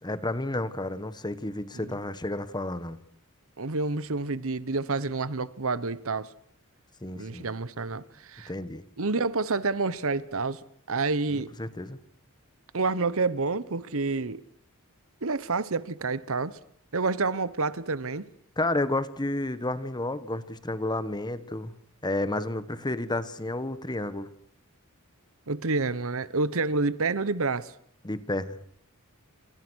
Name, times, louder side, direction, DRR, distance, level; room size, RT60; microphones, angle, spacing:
voice 1, 0.0-3.0 7.0-7.5 8.5-8.8 11.3-12.0 18.6-21.7 22.0-24.3 28.0-28.6, left 2 dB, 20° left, 1.4 m, -31 dB
voice 2, 3.6-6.3 7.2-8.5 9.0-10.6 10.9-11.5 12.7-14.4 15.2-16.6 16.9-18.3 25.5-27.7, right 3 dB, 65° right, 1.1 m, -28 dB
30.0 x 26.0 x 6.4 m
head